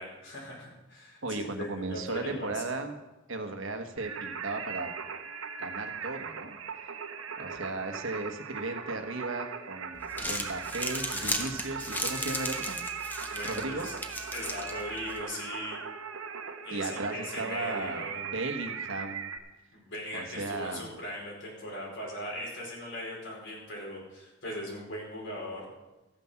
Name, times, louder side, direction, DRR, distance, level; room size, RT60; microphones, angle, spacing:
voice 1, 0.0-2.6 13.3-13.9 14.3-15.8 16.6-18.2 19.7-25.6, left 1 dB, 60° left, -2 dB, 4.7 m, -39 dB
voice 2, 1.2-3.0 3.3-4.9 5.6-6.6 7.4-12.8 13.4-13.9 16.7-19.3 20.1-20.9, right 2 dB, 70° right, 6 dB, 1.3 m, -36 dB
Singing, 4.0-19.4, right 6 dB, 90° right, 1.1 m, -39 dB
Crumpling crinkling, 9.9-15.2, left 1 dB, 10° left, 1.2 m, -36 dB
14.0 x 9.6 x 5.8 m, 1.0 s
head